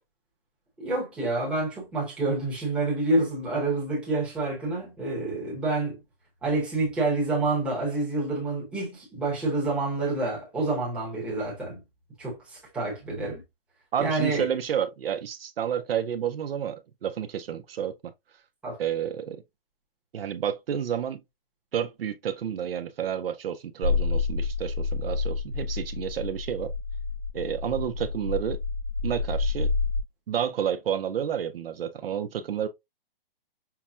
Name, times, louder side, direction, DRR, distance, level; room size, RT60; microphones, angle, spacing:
voice 1, 0.8-6.0 6.4-11.8 12.2-13.4 14.0-14.5 18.6-18.8, right 2 dB, 5° right, 0.9 m, -28 dB
voice 2, 13.9-18.1 18.8-19.4 20.1-21.2 21.7-26.7 27.3-28.6 29.0-29.7 30.3-32.7, right 9 dB, 70° right, 0.6 m, -30 dB
sound 1, 23.8-30.0, left 4 dB, 50° left, 0.8 m, -29 dB
5.7 x 2.1 x 2.3 m
hypercardioid pair, 165°, 30 cm